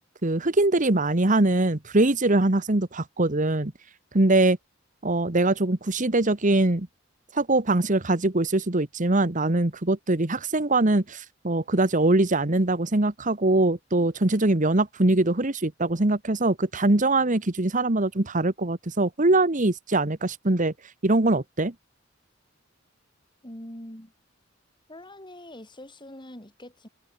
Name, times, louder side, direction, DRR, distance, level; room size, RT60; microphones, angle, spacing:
voice 1, 0.2-3.7 4.1-4.6 5.0-6.9 7.3-20.7 21.0-21.7, right 2 dB, 40° right, 1.5 m, -22 dB
voice 2, 23.4-24.1 24.9-26.9, left 1 dB, 25° left, 7.7 m, -43 dB
head